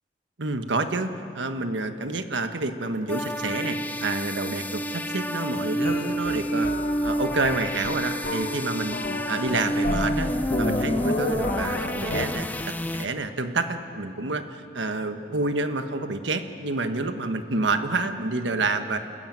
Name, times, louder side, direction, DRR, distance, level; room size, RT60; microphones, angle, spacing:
voice 1, 0.4-6.7 7.0-8.9 9.3-10.3 10.6-19.0, right 3 dB, 90° right, 8 dB, 1.3 m, -28 dB
sound 1, 3.1-13.1, equal, 10° left, 0.6 m, -29 dB
sound 2, 5.8-12.2, left 2 dB, 45° left, 1.1 m, -31 dB
29.0 x 14.0 x 9.3 m, 2.5 s
head